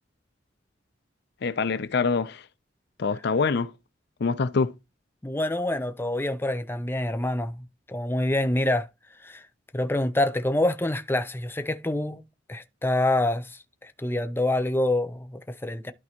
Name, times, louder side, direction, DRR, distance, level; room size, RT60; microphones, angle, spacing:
voice 1, 1.4-2.5 3.0-3.7 4.2-4.7, left 4 dB, 60° left, 0.5 m, -25 dB
voice 2, 5.2-8.9 9.2-9.4 9.7-12.2 12.5-15.9, left 1 dB, 10° left, 0.6 m, -26 dB
12.0 x 4.6 x 2.9 m
head